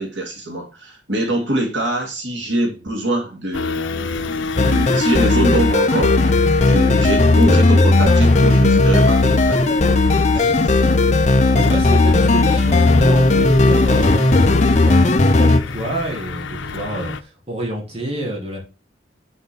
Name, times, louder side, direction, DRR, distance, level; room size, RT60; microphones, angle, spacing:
voice 1, 0.0-9.8 10.4-11.0, right 1 dB, 80° right, 2.4 m, -24 dB
sound 1, 3.5-17.2, left 4 dB, 90° left, 0.7 m, -29 dB
sound 2, 4.6-15.6, left 2 dB, 40° left, 0.8 m, -15 dB
voice 2, 10.3-10.8 11.1-18.6, right 2 dB, 30° right, 3.4 m, -28 dB
6.2 x 5.3 x 6.9 m
head